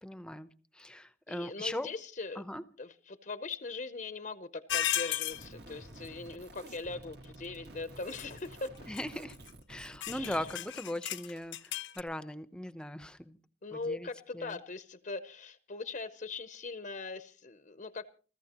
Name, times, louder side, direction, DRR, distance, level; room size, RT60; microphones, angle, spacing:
voice 1, 0.0-1.9 2.3-2.6 8.9-9.4 9.7-13.4 13.7-14.6, left 1 dB, 5° left, 12 dB, 0.8 m, -39 dB
voice 2, 1.3-2.4 2.8-8.9 10.1-10.5 13.6-18.0, left 3 dB, 45° left, 10 dB, 0.7 m, -41 dB
sound 1, 4.7-5.4 8.1-8.4 8.9-9.0 9.3-9.5 10.0-12.0, left 12 dB, 80° left, 0.8 m, -34 dB
sound 2, 5.3-10.6, right 2 dB, 60° right, 1.8 m, -50 dB
29.5 x 14.0 x 2.9 m, 0.39 s
head